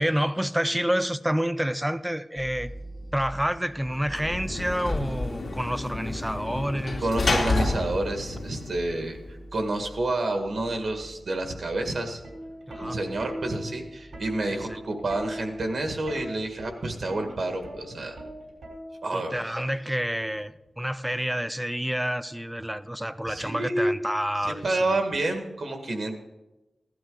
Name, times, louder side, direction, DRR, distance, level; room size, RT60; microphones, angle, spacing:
voice 1, 0.0-2.7 3.1-7.5 12.7-13.0 14.5-14.8 19.1-25.0, equal, 5° right, 13 dB, 0.5 m, -29 dB
sound 1, 2.4-18.5, right 1 dB, 35° left, 1.2 m, -45 dB
Sliding door / Slam, 3.9-9.3, left 2 dB, 60° left, 2.0 m, -30 dB
voice 2, 7.0-12.2 12.8-18.2 19.0-19.5 23.3-24.0 24.4-26.1, right 2 dB, 65° right, 5 dB, 1.8 m, -29 dB
Plucked string instrument, 12.2-19.3 20.4-20.7, right 1 dB, 85° right, 4.3 m, -39 dB
15.5 x 12.0 x 3.9 m, 1.0 s
wide cardioid pair, 80°, 0 cm